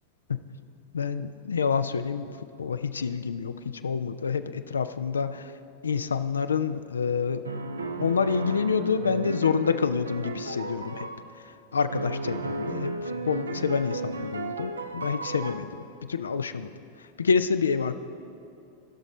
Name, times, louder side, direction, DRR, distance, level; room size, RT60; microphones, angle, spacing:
voice 1, 0.9-5.5 5.8-7.4 8.0-11.1 11.3-16.7 17.0-18.0, left 6 dB, 70° left, 11 dB, 0.3 m, -28 dB
sound 1, 7.4-11.2 11.9-15.6, right 2 dB, 75° right, 0.6 m, -34 dB
17.0 x 6.0 x 4.2 m, 2.7 s
figure-of-eight pair, 90°, 0 cm